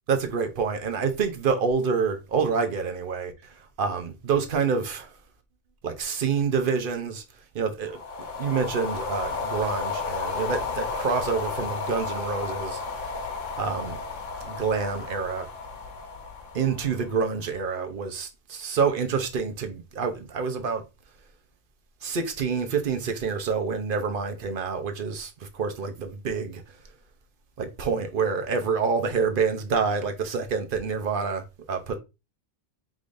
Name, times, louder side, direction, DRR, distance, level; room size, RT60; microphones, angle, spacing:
voice 1, 0.1-5.1 5.8-7.2 7.5-8.0 8.4-13.1 13.6-14.0 14.4-15.5 16.5-20.8 22.0-26.6 27.6-32.0, right 5 dB, 50° right, 0.9 m, -27 dB
sound 1, 7.9-17.4, left 4 dB, 90° left, 1.2 m, -33 dB
4.9 x 3.8 x 2.5 m
omnidirectional pair, 1.2 m